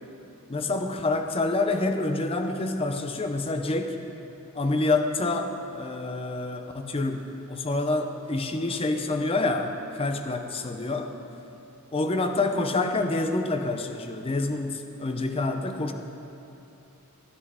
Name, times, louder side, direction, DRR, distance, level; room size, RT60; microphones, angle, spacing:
voice 1, 0.5-4.0 4.5-11.1 11.9-15.9, left 2 dB, 25° left, 6 dB, 0.6 m, -27 dB
13.5 x 10.0 x 3.7 m, 2.9 s
head